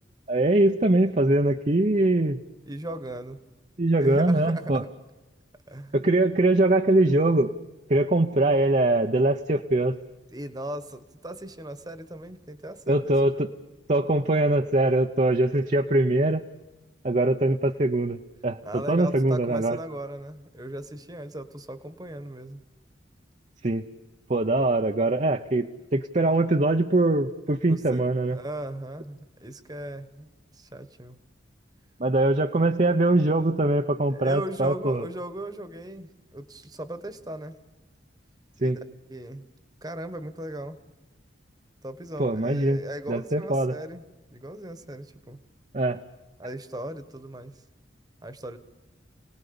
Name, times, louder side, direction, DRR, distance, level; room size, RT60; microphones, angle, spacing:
voice 1, 0.3-2.4 3.8-4.8 5.9-7.5 7.9-10.0 12.9-13.5 13.9-16.4 17.0-19.8 23.6-23.8 24.3-28.4 32.0-35.0 38.6-38.8 42.2-42.8 43.1-43.7 45.7-46.0, right 2 dB, 35° right, 5 dB, 0.8 m, -22 dB
voice 2, 2.7-3.4 4.0-4.9 5.7-6.0 10.3-13.5 18.6-22.6 27.7-31.2 34.1-37.6 38.6-38.8 39.1-39.5 39.8-40.8 41.8-44.0 44.3-45.4 46.4-47.6 48.2-48.6, right 1 dB, 20° right, 11 dB, 1.3 m, -37 dB
29.0 x 19.0 x 7.0 m, 1.1 s
head